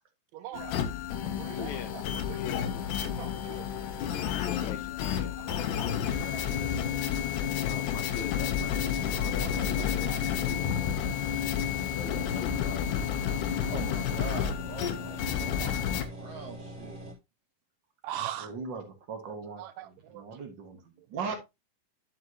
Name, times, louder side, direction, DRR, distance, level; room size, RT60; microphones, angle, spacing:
voice 1, 0.3-0.7 1.2-2.0 2.3-2.6 3.0-3.6 4.6-4.7 5.4-6.8 7.6-7.7 9.4-10.2 10.7-10.9 12.3-12.4 13.2-13.4 15.5-15.8 18.0-18.5 19.6-20.2 21.2-21.4, right 12 dB, 75° right, 1.7 m, -42 dB
sound 1, 0.5-16.1, left 9 dB, 85° left, 2.4 m, -31 dB
voice 2, 1.6-1.9 2.4-2.9 3.2-3.4 4.4-5.4 7.6-10.8 11.9-13.1, left 7 dB, 65° left, 2.5 m, -43 dB
voice 3, 6.4-7.0 18.4-21.4, right 5 dB, 45° right, 1.8 m, -40 dB
sound 2, 8.0-17.1, right 1 dB, 25° right, 2.9 m, -44 dB
voice 4, 13.7-17.0, right 5 dB, 60° right, 1.8 m, -43 dB
11.0 x 5.7 x 2.8 m
omnidirectional pair, 3.7 m